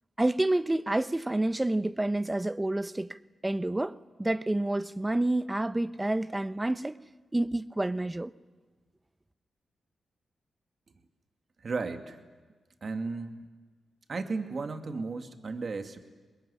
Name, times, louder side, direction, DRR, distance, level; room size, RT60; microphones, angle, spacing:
voice 1, 0.2-7.0 7.3-8.3, right 1 dB, 20° right, 0.9 m, -29 dB
voice 2, 11.6-12.2 12.8-13.4 14.1-16.0, right 4 dB, 55° right, 2.4 m, -34 dB
24.0 x 21.0 x 10.0 m
cardioid pair, 50°, 0 cm